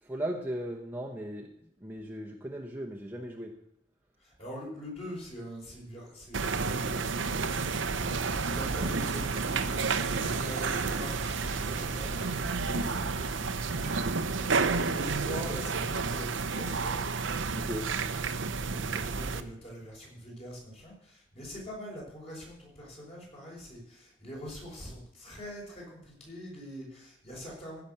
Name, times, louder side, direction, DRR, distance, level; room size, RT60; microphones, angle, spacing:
voice 1, 0.0-1.5 1.8-3.6 17.5-18.0, right 1 dB, 10° right, 0 dB, 1.0 m, -37 dB
voice 2, 4.2-17.0 18.4-27.8, equal, 35° left, -3 dB, 5.5 m, -44 dB
sound 1, 6.3-19.4, right 4 dB, 75° right, 0.8 m, -31 dB
sound 2, 8.5-15.8, right 3 dB, 40° right, 1.2 m, -44 dB
15.5 x 6.0 x 6.7 m, 0.75 s
head